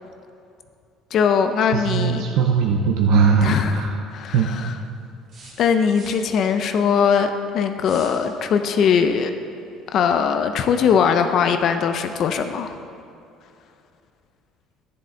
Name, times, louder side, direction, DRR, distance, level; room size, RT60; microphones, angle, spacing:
voice 1, 1.1-2.3 3.4-3.8 4.1-4.8 5.6-9.3 9.9-12.8, left 7 dB, 40° left, 7 dB, 0.5 m, -20 dB
voice 2, 1.7-3.9 4.3-4.5, right 5 dB, 75° right, 1 dB, 0.7 m, -19 dB
sound 1, 5.3-6.3 7.8-8.2, right 2 dB, 40° right, 2.5 m, -43 dB
11.0 x 9.8 x 3.8 m, 2.5 s
cardioid pair, 170°, 0 cm